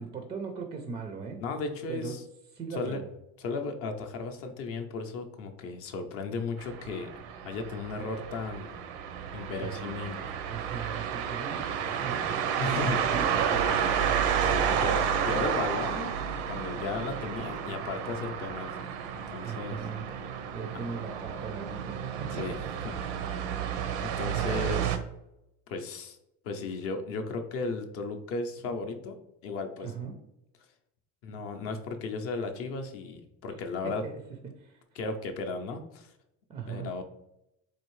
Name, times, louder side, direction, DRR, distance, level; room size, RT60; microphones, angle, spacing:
voice 1, 0.0-1.4 1.9-2.2 2.5-3.1 9.6-14.3 14.6-15.0 19.4-20.1 20.5-22.4 24.4-24.6 29.8-30.2 34.0-34.8 36.5-36.9, right 5 dB, 20° right, 5 dB, 0.3 m, -39 dB
voice 2, 1.4-2.2 2.7-3.0 3.4-7.1 7.4-8.8 9.3-10.2 12.6-13.0 14.4-16.1 16.5-18.8 19.3-19.8 22.4-22.6 22.8-23.0 24.0-24.9 25.7-26.2 26.4-29.9 31.2-34.0 35.0-36.1 36.7-37.0, left 3 dB, 45° left, 5 dB, 0.5 m, -35 dB
sound 1, 6.6-25.0, right 8 dB, 85° right, 0.6 m, -31 dB
4.3 x 2.7 x 3.0 m, 0.83 s
supercardioid pair, 140°, 33 cm